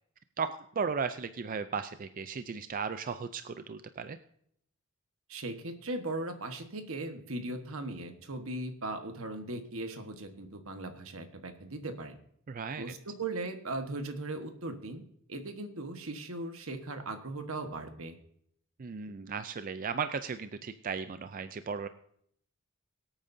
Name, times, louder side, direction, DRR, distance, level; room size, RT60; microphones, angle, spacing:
voice 1, 0.4-4.2 12.5-12.9 18.8-21.9, right 5 dB, 40° right, 10 dB, 0.4 m, -36 dB
voice 2, 5.3-12.2 12.8-15.0 15.3-18.2, right 2 dB, 75° right, 7 dB, 1.4 m, -38 dB
23.0 x 8.7 x 2.7 m, 0.68 s
head